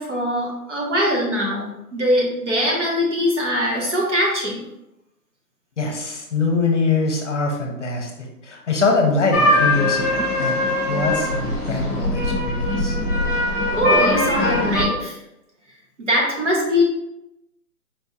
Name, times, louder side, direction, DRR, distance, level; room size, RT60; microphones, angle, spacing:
voice 1, 0.0-4.6 13.5-15.2 16.1-16.8, equal, 50° right, -2 dB, 1.2 m, -22 dB
voice 2, 5.8-8.1 8.4-10.6 10.9-13.0, left 3 dB, 50° left, 1 dB, 0.9 m, -23 dB
sound 1, 9.3-14.8, left 1 dB, 5° left, 1.0 m, -21 dB
4.4 x 3.4 x 2.8 m, 0.88 s
hypercardioid pair, 180°, 47 cm